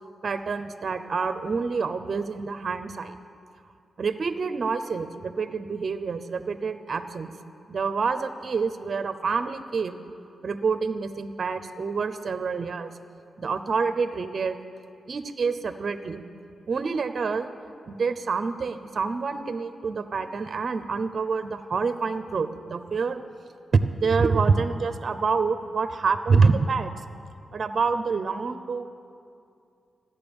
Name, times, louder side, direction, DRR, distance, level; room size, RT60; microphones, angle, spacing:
voice 1, 0.2-3.2 4.0-7.3 7.7-10.0 10.4-12.9 13.4-14.6 15.1-16.2 16.7-17.5 17.9-23.2 23.7-26.9 27.5-28.8, right 4 dB, 55° right, 10 dB, 0.6 m, -27 dB
14.0 x 9.5 x 7.0 m, 2.5 s
cardioid pair, 95°, 0 cm